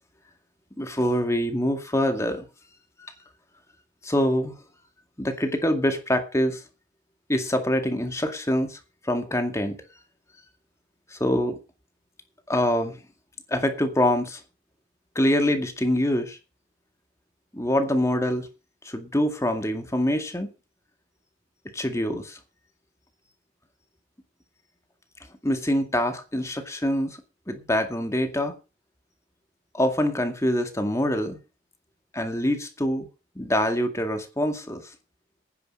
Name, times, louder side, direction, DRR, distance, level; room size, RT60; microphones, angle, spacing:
voice 1, 0.8-2.4 4.0-4.5 5.2-6.6 7.3-8.8 9.0-9.8 11.1-11.6 12.5-13.0 13.5-14.4 15.2-16.4 17.5-18.5 18.8-20.5 21.7-22.4 25.4-27.2 27.5-28.5 29.7-31.4 32.1-33.1 33.4-34.8, left 1 dB, 15° left, 2.1 m, -25 dB
10.0 x 9.9 x 6.4 m
head